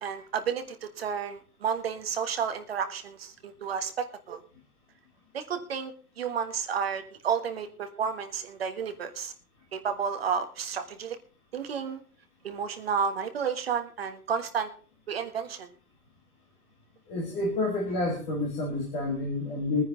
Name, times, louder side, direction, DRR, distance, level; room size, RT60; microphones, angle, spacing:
voice 1, 0.0-4.4 5.3-5.9 6.2-9.3 9.7-11.2 11.5-12.0 12.4-14.7 15.1-15.7, right 7 dB, 35° right, 7 dB, 1.5 m, -31 dB
voice 2, 17.1-19.8, left 2 dB, 10° left, -1 dB, 1.6 m, -29 dB
21.5 x 9.7 x 3.9 m, 0.39 s
hypercardioid pair, 175°, 49 cm